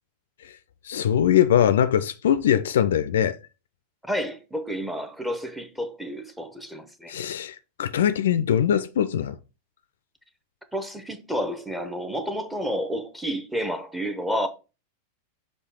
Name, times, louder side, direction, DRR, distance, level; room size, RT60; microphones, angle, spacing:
voice 1, 0.8-3.4 7.1-9.4, left 10 dB, 60° left, 0.4 m, -22 dB
voice 2, 4.0-7.1 10.7-14.5, equal, 5° right, 0.9 m, -30 dB
6.6 x 2.8 x 5.5 m
figure-of-eight pair, 90°, 0 cm